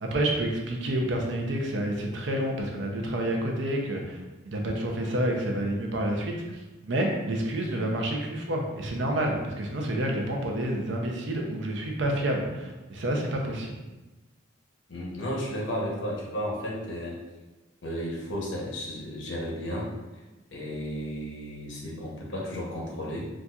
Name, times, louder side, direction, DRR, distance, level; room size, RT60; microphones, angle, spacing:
voice 1, 0.0-13.7, right 1 dB, 70° right, 1 dB, 0.5 m, -29 dB
voice 2, 14.9-17.2 17.8-19.9 20.5-23.3, equal, 75° left, -3 dB, 0.8 m, -33 dB
4.0 x 2.4 x 2.4 m, 1.1 s
head